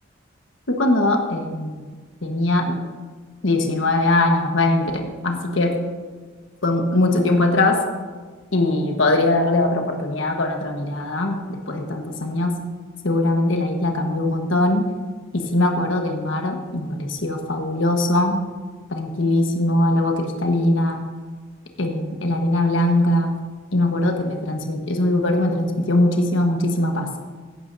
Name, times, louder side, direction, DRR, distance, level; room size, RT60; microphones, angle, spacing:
voice 1, 0.7-1.8 2.2-2.8 3.4-5.8 6.6-7.8 8.5-12.6 13.0-14.9 15.3-18.4 18.9-21.0 21.8-23.3 23.7-27.1, left 2 dB, 70° left, 3 dB, 1.3 m, -21 dB
15.5 x 11.5 x 2.7 m, 1.5 s
head